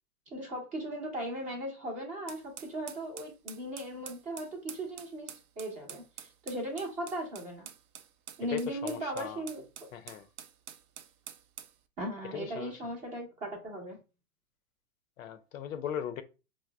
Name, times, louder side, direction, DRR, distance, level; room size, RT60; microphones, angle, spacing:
voice 1, 0.3-7.7 8.4-9.6 12.0-14.0, right 1 dB, 15° right, 0.6 m, -38 dB
sound 1, 2.3-11.8, right 9 dB, 65° right, 0.6 m, -48 dB
voice 2, 8.5-9.4 9.9-10.3 12.3-12.7 15.2-16.2, left 9 dB, 60° left, 0.5 m, -38 dB
4.6 x 2.0 x 2.2 m
hypercardioid pair, 130°, 47 cm